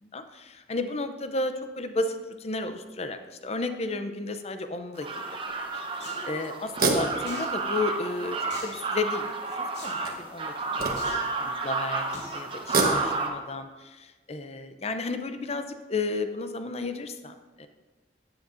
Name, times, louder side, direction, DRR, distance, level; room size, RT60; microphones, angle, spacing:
voice 1, 0.0-5.1 5.6-8.4 8.6-10.5 11.0-17.7, left 3 dB, 35° left, 8 dB, 0.6 m, -33 dB
sound 1, 4.9-13.3, right 3 dB, 30° right, 0.9 m, -31 dB
sound 2, 5.5-5.6 6.6-8.0 8.6-8.7 9.8-11.4 12.5-13.4, right 3 dB, 55° right, 1.2 m, -29 dB
sound 3, 6.0-6.2 7.3-7.5 8.5-8.8 9.7-9.9 10.9-11.2 12.1-12.4 12.9-13.0, left 2 dB, 70° left, 2.3 m, -42 dB
13.0 x 8.8 x 2.6 m, 1.3 s
head